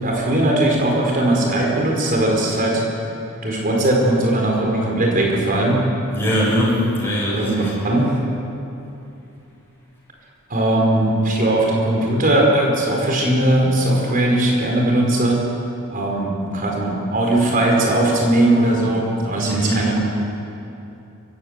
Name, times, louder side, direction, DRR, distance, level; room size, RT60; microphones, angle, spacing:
voice 1, 0.0-2.8 3.4-5.8 7.3-8.1 10.5-15.4 15.9-20.0, right 1 dB, 40° right, -1 dB, 4.8 m, -19 dB
voice 2, 6.1-7.7 19.4-19.9, equal, 10° left, -6 dB, 6.6 m, -21 dB
22.5 x 15.5 x 8.2 m, 2.8 s
head